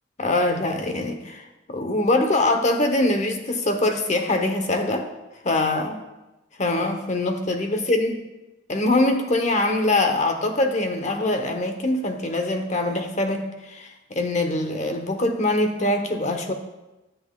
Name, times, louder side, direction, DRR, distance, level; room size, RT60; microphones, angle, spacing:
voice 1, 0.2-1.4 1.7-5.0 5.4-6.0 6.6-8.2 8.7-16.5, left 2 dB, 40° left, 5 dB, 0.9 m, -23 dB
12.0 x 7.7 x 2.3 m, 1.0 s
head